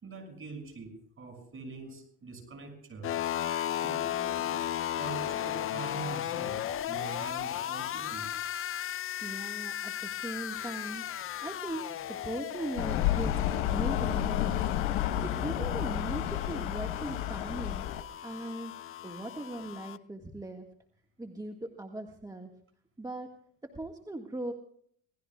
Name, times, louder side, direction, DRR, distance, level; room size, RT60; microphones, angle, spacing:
voice 1, 0.0-3.1 3.8-4.6 4.9-8.3 16.3-16.5, right 4 dB, 35° right, 5 dB, 6.3 m, -44 dB
sound 1, 3.0-20.0, left 11 dB, 35° left, 0.5 m, -36 dB
voice 2, 9.2-11.0 11.4-14.7 15.2-17.8 18.2-18.8 19.0-20.7 21.2-22.5 23.0-23.3 23.6-24.5, right 1 dB, 10° right, 3 dB, 1.7 m, -39 dB
sound 2, 12.8-18.0, left 12 dB, 85° left, 1.3 m, -30 dB
27.0 x 18.5 x 2.3 m, 0.63 s
supercardioid pair, 95°, 35 cm